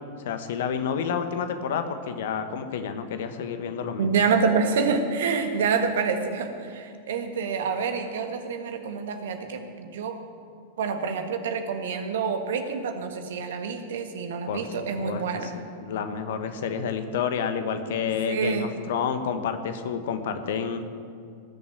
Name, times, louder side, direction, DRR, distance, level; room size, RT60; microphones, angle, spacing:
voice 1, 0.2-4.1 14.5-14.7 15.0-20.9, left 7 dB, 55° left, 8 dB, 1.2 m, -29 dB
voice 2, 4.0-10.2 10.8-15.5 18.3-18.7, right 5 dB, 60° right, 6 dB, 1.5 m, -27 dB
18.5 x 7.2 x 8.1 m, 2.3 s
figure-of-eight pair, 90°, 0 cm